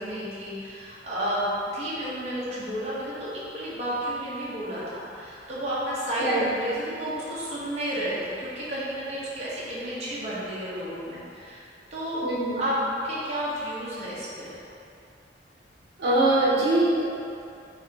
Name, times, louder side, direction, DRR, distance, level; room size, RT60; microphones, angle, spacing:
voice 1, 0.0-12.2 12.6-12.8 13.0-14.5, equal, 40° right, -9 dB, 1.0 m, -32 dB
voice 2, 12.2-12.6 16.0-17.0, right 1 dB, 70° right, -8 dB, 0.9 m, -22 dB
5.6 x 3.3 x 2.9 m, 2.6 s
head